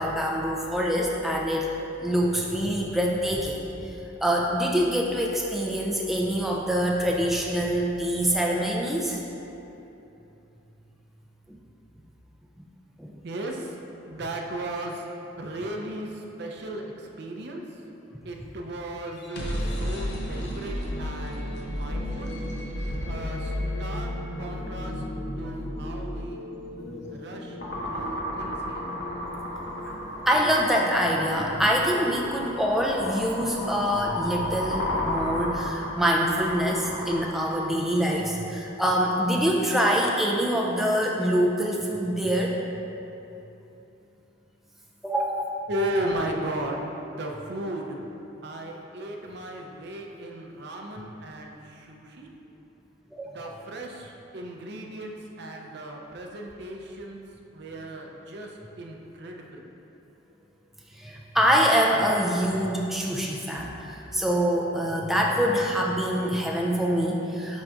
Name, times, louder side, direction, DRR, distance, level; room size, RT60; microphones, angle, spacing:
voice 1, 0.0-1.7 2.0-3.6 4.2-9.2 13.0-13.1 26.8-27.1 30.3-42.6 45.0-45.5 53.1-53.3 61.0-67.6, equal, ahead, -2 dB, 0.3 m, -25 dB
voice 2, 13.2-13.7 14.1-15.0 15.4-16.8 17.2-17.6 18.2-22.4 23.1-23.5 23.8-24.1 24.4-25.0 25.4-26.4 27.1-27.6 27.9-28.9 45.7-48.0 48.4-52.3 53.3-57.2 57.5-58.5 58.8-59.7, right 1 dB, 60° right, 1 dB, 0.6 m, -35 dB
sound 1, 19.1-32.9, left 1 dB, 60° left, 0.6 m, -34 dB
sound 2, 27.6-37.2, left 1 dB, 75° left, 1.4 m, -32 dB
10.5 x 3.8 x 2.4 m, 3.0 s
head